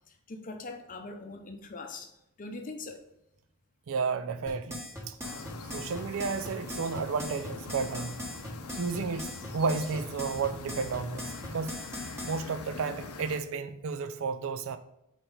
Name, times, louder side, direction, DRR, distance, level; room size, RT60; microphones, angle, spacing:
voice 1, 0.3-2.1 2.4-3.0, left 3 dB, 35° left, 0.7 m, -41 dB
voice 2, 3.9-4.8 5.1-5.2 5.7-8.1 8.8-11.8 12.2-14.8, right 5 dB, 65° right, 0.4 m, -32 dB
sound 1, 4.5-12.4, left 1 dB, 10° right, 1.4 m, -40 dB
sound 2, 5.2-13.4, left 3 dB, 80° left, 0.6 m, -43 dB
4.4 x 4.4 x 5.1 m
head